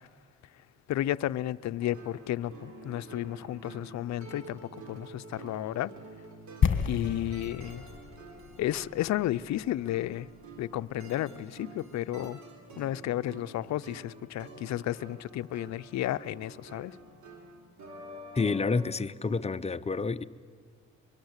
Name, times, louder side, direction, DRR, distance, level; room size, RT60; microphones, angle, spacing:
voice 1, 0.9-4.6 4.9-5.9 6.9-7.8 8.6-10.3 10.6-12.4 12.8-16.9, left 13 dB, 65° left, 0.6 m, -32 dB
sound 1, 1.8-18.9, right 2 dB, 70° right, 3.5 m, -48 dB
sound 2, 6.6-10.6 10.8-10.9, left 7 dB, 40° left, 1.6 m, -32 dB
voice 2, 18.3-20.2, left 4 dB, 20° left, 0.7 m, -29 dB
23.5 x 21.5 x 8.1 m
cardioid pair, 90°, 30 cm